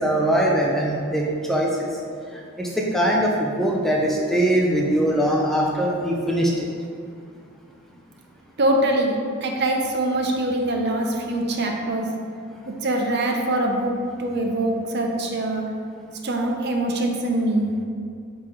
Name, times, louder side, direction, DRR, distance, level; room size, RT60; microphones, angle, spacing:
voice 1, 0.0-1.9 2.6-6.7, right 1 dB, ahead, -3 dB, 0.5 m, -21 dB
voice 2, 8.6-9.2 9.4-12.1 12.7-13.9 14.2-15.6 16.2-17.8, right 1 dB, 50° right, 2 dB, 0.7 m, -23 dB
9.0 x 3.7 x 3.2 m, 2.3 s
head